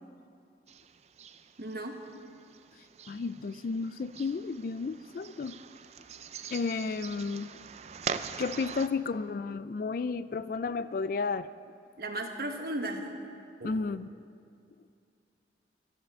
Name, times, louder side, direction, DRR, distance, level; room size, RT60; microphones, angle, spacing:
sound 1, 0.7-8.9, right 6 dB, 35° right, 0.4 m, -43 dB
voice 1, 1.6-1.9 12.0-13.1 13.6-13.7, right 1 dB, 55° right, 3 dB, 1.4 m, -35 dB
voice 2, 3.1-5.6 6.5-7.5 8.4-11.5 13.6-14.1, left 4 dB, 50° left, 15 dB, 0.3 m, -32 dB
13.5 x 11.0 x 7.2 m, 2.5 s
head